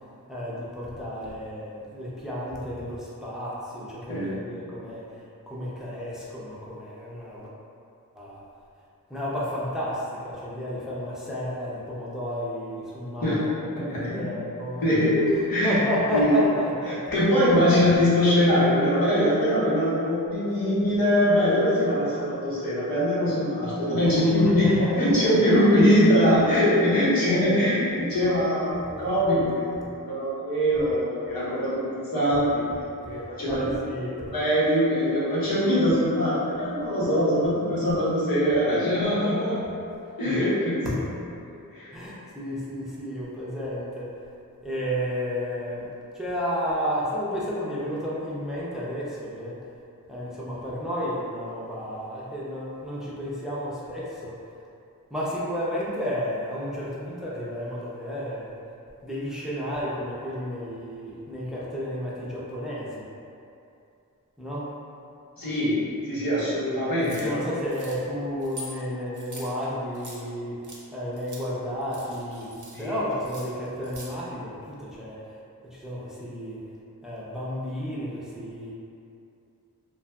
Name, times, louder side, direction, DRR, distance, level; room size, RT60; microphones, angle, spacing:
voice 1, 0.3-7.5 8.2-8.4 9.1-14.9 15.4-17.0 24.2-25.5 33.0-34.3 40.3-40.4 41.9-44.1 44.6-45.9 46.1-49.6 50.1-54.4 55.1-58.5 59.0-63.0 64.4-64.7 67.0-72.5 72.8-75.3 75.6-76.6 77.0-78.7, equal, ahead, -8 dB, 0.5 m, -32 dB
voice 2, 13.8-14.3 14.8-15.8 16.1-16.4 17.1-32.6 33.1-33.6 34.3-39.7 40.2-40.9 41.7-41.9 65.4-65.8 66.1-67.4 72.7-72.9, equal, 80° left, -10 dB, 0.9 m, -22 dB
sound 1, 67.0-67.3 67.7-68.0 68.4-68.7 69.1-70.2 70.6-70.8 71.2-71.4 71.8-72.9 73.2-74.1, right 1 dB, 60° right, 0.5 m, -44 dB
2.8 x 2.5 x 2.2 m, 2.6 s
wide cardioid pair, 55°, 35 cm